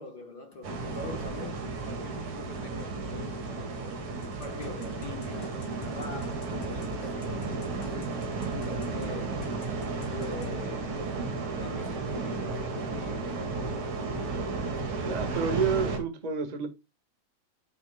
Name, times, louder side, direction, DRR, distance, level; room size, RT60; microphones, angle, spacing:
voice 1, 0.0-4.0 4.4-9.4 10.0-11.2 11.5-13.6, left 3 dB, 50° left, 1.3 m, -44 dB
sound 1, 0.6-16.0, right 3 dB, 70° right, 3.4 m, -33 dB
sound 2, 4.2-9.1 9.4-10.5, left 5 dB, 75° left, 3.4 m, -48 dB
sound 3, 7.3-13.4, right 2 dB, 15° right, 4.9 m, -54 dB
voice 2, 15.0-16.7, right 6 dB, 30° right, 0.7 m, -29 dB
9.1 x 8.1 x 2.3 m
omnidirectional pair, 3.5 m